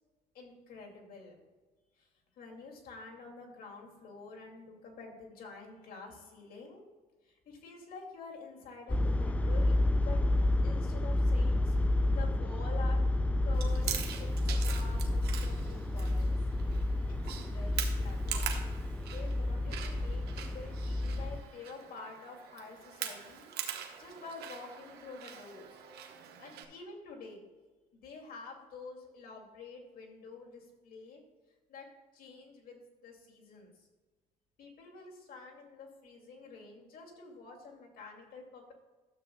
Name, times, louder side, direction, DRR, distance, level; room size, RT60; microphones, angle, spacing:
voice 1, 0.3-1.4 2.0-2.1 2.4-6.8 7.2-10.2 10.6-11.8 12.1-16.3 17.2-18.4 19.1-25.8 26.4-27.4 27.9-31.2 31.7-31.9 32.1-33.9 34.6-38.7, left 4 dB, 60° left, -1 dB, 2.6 m, -48 dB
sound 1, 8.9-21.4, left 1 dB, 10° left, 0.3 m, -30 dB
Chewing mastication, 13.5-26.6, right 9 dB, 70° right, 1.2 m, -43 dB
12.5 x 8.0 x 2.3 m, 1.3 s
cardioid pair, 110°, 17 cm